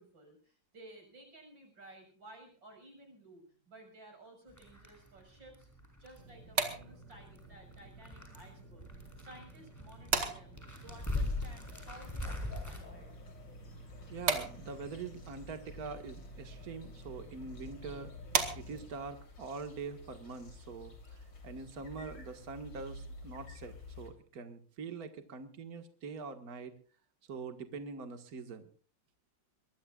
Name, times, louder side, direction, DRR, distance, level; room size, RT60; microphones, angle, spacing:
voice 1, 0.0-5.7 6.0-8.9 9.2-13.1, right 1 dB, 90° right, 4 dB, 6.8 m, -55 dB
sound 1, 4.5-12.8, left 2 dB, 10° left, 4.8 m, -42 dB
sound 2, 6.2-19.1, right 4 dB, 70° right, 2.8 m, -40 dB
sound 3, 10.9-24.1, left 2 dB, 75° left, 4.0 m, -50 dB
voice 2, 14.1-18.1 18.6-26.7 27.3-28.6, right 4 dB, 50° right, 8 dB, 2.2 m, -44 dB
23.0 x 21.5 x 2.4 m, 0.41 s
omnidirectional pair, 2.0 m